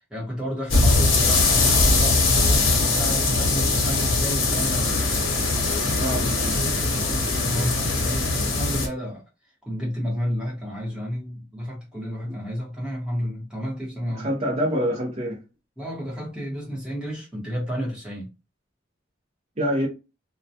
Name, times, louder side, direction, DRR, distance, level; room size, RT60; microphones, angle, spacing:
voice 1, 0.1-4.9 6.6-9.2 9.7-14.3 15.8-18.3, equal, 5° right, 1.0 m, -31 dB
sound 1, 0.7-8.9, left 3 dB, 90° left, 0.8 m, -21 dB
voice 2, 6.0-6.6 12.3-12.4 14.1-15.4 19.6-19.9, equal, 35° right, 0.6 m, -26 dB
2.2 x 2.2 x 2.7 m
head